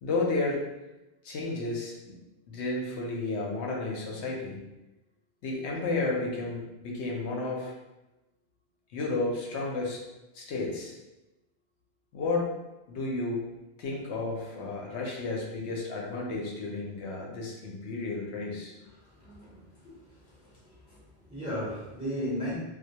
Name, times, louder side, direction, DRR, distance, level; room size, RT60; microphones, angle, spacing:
voice 1, 0.0-0.6 1.2-2.1 2.5-4.6 5.4-7.7 8.9-10.0 10.3-10.9 12.1-12.5 12.9-13.4 13.8-18.7 19.8-19.9, left 3 dB, 75° left, -2 dB, 0.8 m, -32 dB
voice 2, 19.0-19.7 20.3-21.0 21.3-22.6, equal, 5° right, -9 dB, 0.6 m, -35 dB
2.2 x 2.2 x 2.7 m, 1.0 s
omnidirectional pair, 1.2 m